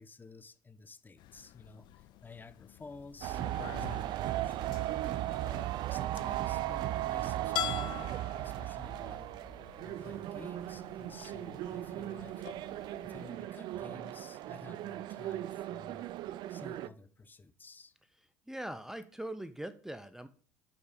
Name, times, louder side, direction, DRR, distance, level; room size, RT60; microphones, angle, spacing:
voice 1, 0.0-4.7 5.2-9.3 9.8-12.5 13.0-16.1 16.5-17.9, left 4 dB, 20° left, 0.8 m, -52 dB
sound 1, 1.2-13.3, left 13 dB, 60° left, 0.4 m, -46 dB
sound 2, 3.2-16.9, right 14 dB, 60° right, 0.4 m, -37 dB
Acoustic guitar / Strum, 9.9-13.3, right 3 dB, 75° right, 1.7 m, -62 dB
voice 2, 18.5-20.3, right 1 dB, 5° right, 0.5 m, -41 dB
7.8 x 5.4 x 5.1 m
hypercardioid pair, 70°, 9 cm